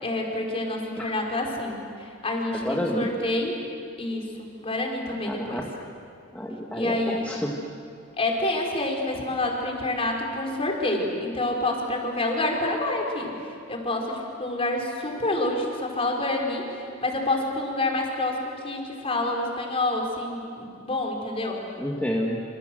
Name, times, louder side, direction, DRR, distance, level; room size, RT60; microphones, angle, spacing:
voice 1, 0.0-3.6 4.0-5.6 6.7-7.4 8.2-13.3 13.7-21.6, left 2 dB, 30° left, 0 dB, 4.7 m, -28 dB
voice 2, 2.5-3.1 5.1-5.7 6.3-7.5 21.8-22.4, equal, 5° left, -2 dB, 1.9 m, -29 dB
27.5 x 27.0 x 7.8 m, 2.4 s
head